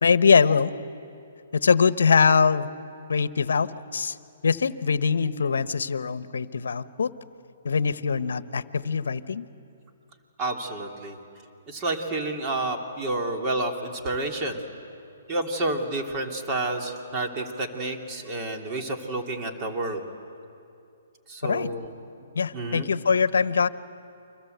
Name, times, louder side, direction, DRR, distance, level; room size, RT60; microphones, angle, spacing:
voice 1, 0.0-0.7 1.5-2.7 3.1-4.2 4.4-7.1 7.6-9.5 21.4-21.7 22.3-23.7, left 5 dB, 75° left, 14 dB, 1.0 m, -22 dB
voice 2, 10.4-11.2 11.7-14.6 15.3-20.0 21.3-21.9 22.5-22.9, right 2 dB, 25° right, 2 dB, 3.1 m, -29 dB
29.5 x 24.5 x 8.1 m, 2.5 s
hypercardioid pair, 135°, 0 cm